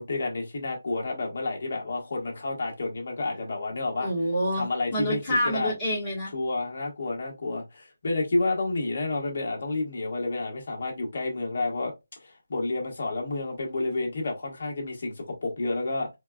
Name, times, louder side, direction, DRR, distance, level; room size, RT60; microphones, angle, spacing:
voice 1, 0.0-4.1 4.5-5.7 6.3-11.9 12.2-16.1, left 2 dB, 45° left, 1.4 m, -30 dB
voice 2, 4.0-6.3, equal, 15° left, 1.5 m, -27 dB
4.3 x 2.4 x 2.3 m
hypercardioid pair, 175°, 0 cm